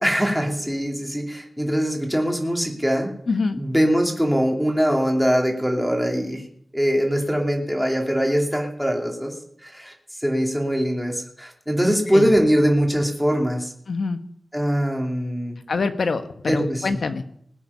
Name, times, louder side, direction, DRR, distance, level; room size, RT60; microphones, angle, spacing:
voice 1, 0.0-3.1 3.6-6.5 6.7-9.3 9.6-9.9 10.2-13.7 14.5-15.6 16.5-17.0, equal, ahead, 1 dB, 2.6 m, -22 dB
voice 2, 3.3-3.6 12.1-12.3 13.9-14.2 15.7-17.3, left 4 dB, 80° left, 9 dB, 1.2 m, -25 dB
20.0 x 8.4 x 5.5 m, 0.66 s
wide cardioid pair, 90°, 0 cm